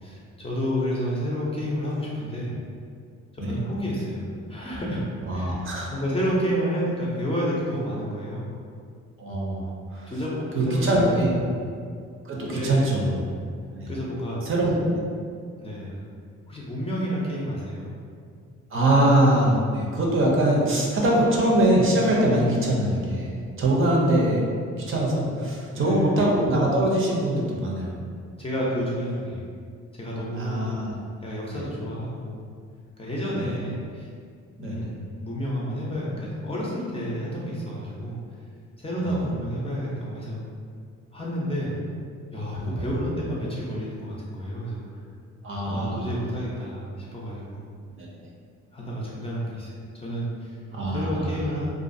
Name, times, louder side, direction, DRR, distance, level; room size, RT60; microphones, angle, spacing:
voice 1, 0.0-2.5 3.3-5.0 5.3-5.6 5.9-8.5 10.1-11.2 11.4-11.6 12.4-13.0 13.9-14.4 15.6-15.9 16.5-17.9 25.7-26.1 28.4-29.5 29.9-30.6 31.2-32.4 33.0-34.1 34.6-38.2 38.8-40.4 41.1-41.7 42.3-45.0 45.6-47.7 48.7-49.7 49.9-50.6 50.9-51.7, equal, 20° left, -5 dB, 0.5 m, -30 dB
voice 2, 5.3-5.9 9.2-10.1 10.6-11.3 12.2-13.2 13.7-13.9 14.4-15.0 18.7-24.4 24.8-28.0 30.3-31.0 31.5-31.6 33.3-33.5 34.6-34.9 39.0-39.1 42.6-42.8 45.4-46.1 48.0-48.1 50.7-51.4, right 1 dB, 45° right, -3 dB, 0.5 m, -23 dB
2.4 x 2.3 x 2.5 m, 2.2 s
cardioid pair, 90°, 30 cm